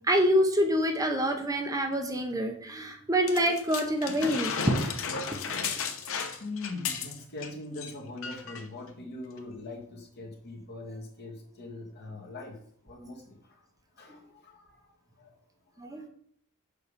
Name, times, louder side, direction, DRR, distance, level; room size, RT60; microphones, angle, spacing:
voice 1, 0.1-4.8 15.8-16.1, equal, 15° right, 4 dB, 0.9 m, -26 dB
sound 1, 3.3-7.5 7.8-7.9 8.2-8.7 9.4-9.5, left 5 dB, 65° left, 1.0 m, -34 dB
voice 2, 6.0-12.6 12.9-13.4 14.0-14.6 15.2-15.3, left 2 dB, 50° left, 1 dB, 1.8 m, -41 dB
6.8 x 5.8 x 5.2 m, 0.63 s
head